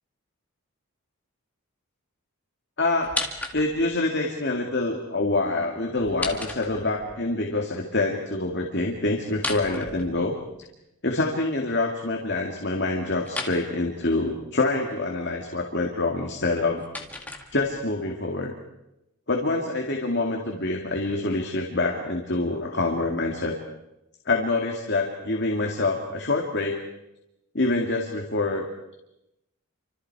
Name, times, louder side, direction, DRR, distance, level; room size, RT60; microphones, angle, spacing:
voice 1, 2.8-3.2 3.5-10.3 11.0-16.8 17.5-18.5 19.3-23.6 24.3-26.8 27.5-28.7, left 2 dB, 50° left, 1 dB, 2.3 m, -26 dB
sound 1, 3.0-4.0 5.9-7.2 9.3-10.6 13.2-13.6 16.3-17.9, left 2 dB, 5° left, 2.0 m, -34 dB
29.5 x 26.0 x 4.8 m, 0.89 s
head